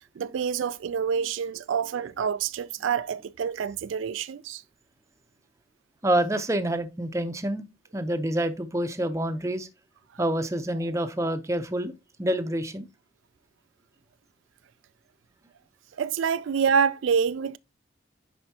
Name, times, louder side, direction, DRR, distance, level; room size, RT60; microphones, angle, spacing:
voice 1, 0.2-4.6 16.0-17.6, right 6 dB, 80° right, 0.4 m, -27 dB
voice 2, 6.0-7.6 7.9-9.7 10.2-11.9 12.2-12.9, right 1 dB, 15° right, 0.6 m, -27 dB
10.0 x 4.4 x 2.8 m
head